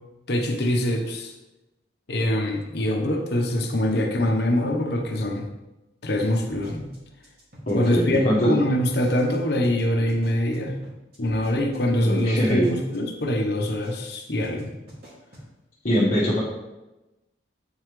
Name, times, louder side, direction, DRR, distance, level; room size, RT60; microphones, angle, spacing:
voice 1, 0.3-1.3 2.1-5.5 6.0-6.9 7.7-10.8 11.2-14.7, left 1 dB, 60° left, 2 dB, 1.0 m, -24 dB
sound 1, 6.0-8.2 8.4-8.6 8.9-9.4 9.6-9.8 10.1-13.0 13.2-13.4 13.7-14.2 14.4-14.6 14.9-15.5, equal, 55° right, 2.5 m, -46 dB
voice 2, 7.7-8.6 12.0-12.7 15.8-16.4, equal, 45° left, -9 dB, 1.4 m, -22 dB
8.3 x 5.5 x 3.2 m, 1.0 s
head